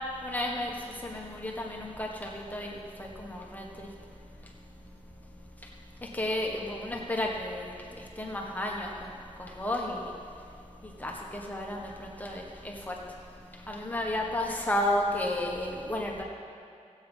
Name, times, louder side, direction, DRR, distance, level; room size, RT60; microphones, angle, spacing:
voice 1, 0.2-3.6 6.1-9.1 9.4-10.1 10.8-12.9 13.7-16.2, left 1 dB, 15° left, -2 dB, 1.2 m, -33 dB
15.5 x 8.3 x 5.3 m, 2.4 s
wide cardioid pair, 145°, 12 cm